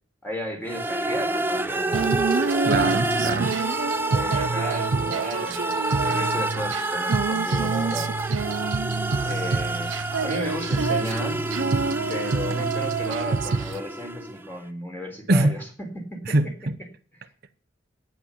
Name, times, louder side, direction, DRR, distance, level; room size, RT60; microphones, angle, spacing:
voice 1, 0.2-2.2 4.1-8.1 9.2-11.4 12.1-16.4, equal, 10° left, 3.8 m, -35 dB
sound 1, 0.7-14.5, right 2 dB, 10° right, 0.7 m, -29 dB
Female singing, 1.9-13.8, right 4 dB, 85° right, 0.6 m, -27 dB
voice 2, 2.6-3.6 15.3-15.6 16.3-16.8, right 2 dB, 55° right, 0.9 m, -23 dB
11.5 x 10.0 x 7.4 m
head